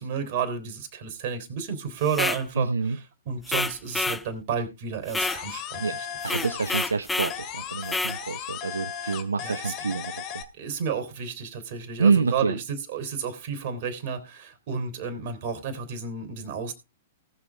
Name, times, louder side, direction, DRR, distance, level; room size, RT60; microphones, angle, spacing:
voice 1, 0.0-6.1 9.0-9.7 10.6-16.7, right 6 dB, 50° right, 8 dB, 3.4 m, -32 dB
sound 1, 2.1-2.4 3.5-4.2 5.1-5.4 6.2-7.4 7.9-8.2, left 2 dB, 5° left, 0.6 m, -28 dB
voice 2, 2.6-3.0 5.8-6.0 6.2-10.4 12.0-12.6, right 4 dB, 85° right, 10 dB, 0.7 m, -27 dB
sound 2, 5.2-7.0 7.3-10.4, left 9 dB, 40° left, 2.2 m, -36 dB
18.5 x 7.2 x 3.5 m, 0.27 s
hypercardioid pair, 115°, 0 cm